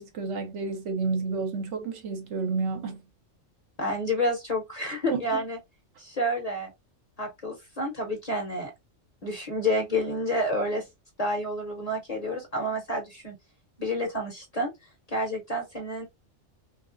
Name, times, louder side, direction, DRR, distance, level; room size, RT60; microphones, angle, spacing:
voice 1, 0.0-3.0 5.1-5.4, right 4 dB, 70° right, 1.0 m, -30 dB
voice 2, 3.8-5.6 6.0-6.7 7.2-8.7 9.2-10.8 11.2-13.3 13.8-14.7 15.1-16.1, left 1 dB, 35° left, 0.7 m, -29 dB
3.1 x 2.4 x 2.5 m
omnidirectional pair, 1.3 m